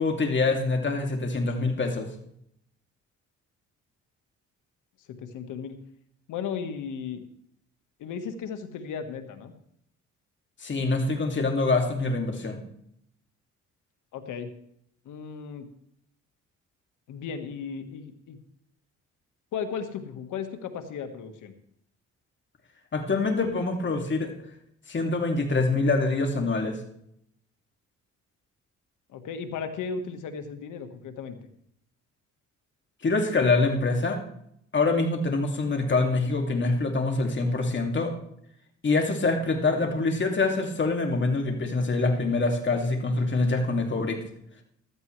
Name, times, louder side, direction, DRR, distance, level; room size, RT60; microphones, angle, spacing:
voice 1, 0.0-2.1 10.6-12.6 22.9-24.3 24.9-26.8 33.0-34.2 34.7-38.1 38.8-44.2, left 3 dB, 40° left, 3 dB, 2.4 m, -25 dB
voice 2, 5.1-5.8 6.3-7.2 8.0-9.5 14.1-14.5 15.0-15.7 17.1-18.4 19.5-21.5 29.1-31.4, left 6 dB, 85° left, 7 dB, 1.5 m, -35 dB
15.5 x 12.5 x 3.2 m, 0.72 s
cardioid pair, 90°, 30 cm